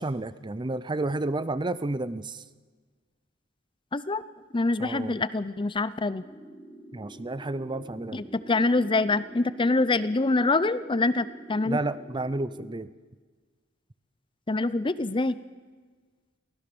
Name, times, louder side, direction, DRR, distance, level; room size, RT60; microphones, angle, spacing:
voice 1, 0.0-2.4 4.8-5.2 6.9-8.3 11.6-12.9, right 2 dB, 20° right, 16 dB, 0.6 m, -31 dB
voice 2, 3.9-4.2 4.5-6.2 8.1-11.8 14.5-15.4, left 3 dB, 25° left, 16 dB, 0.6 m, -25 dB
sound 1, 6.2-12.7, right 1 dB, ahead, 2.4 m, -48 dB
23.5 x 16.5 x 6.9 m, 1.5 s
head